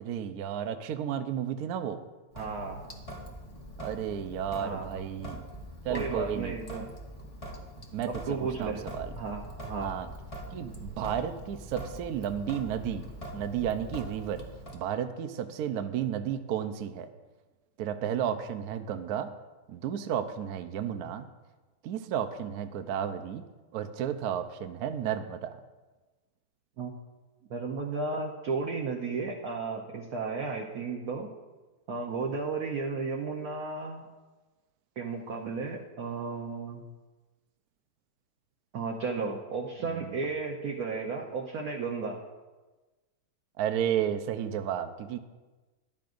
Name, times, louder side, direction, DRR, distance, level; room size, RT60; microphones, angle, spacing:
voice 1, 0.0-2.0 3.8-5.5 5.8-6.6 7.9-9.1 9.8-10.1 10.5-13.1 13.3-14.4 14.7-17.1 17.8-19.3 19.7-21.3 21.8-23.4 23.7-25.6 39.9-40.1 43.6-45.2, right 9 dB, 80° right, 9 dB, 0.8 m, -32 dB
Sink (filling or washing) / Drip, 2.3-14.8, equal, 25° left, 0.9 m, -43 dB
voice 2, 2.3-2.8 4.6-4.9 5.9-6.9 8.0-8.9 9.2-9.9 26.8-26.9 27.5-31.3 31.9-34.0 35.0-36.8 38.7-42.2, right 4 dB, 60° right, 0 dB, 1.0 m, -34 dB
14.0 x 12.0 x 2.6 m, 1.2 s
omnidirectional pair, 2.4 m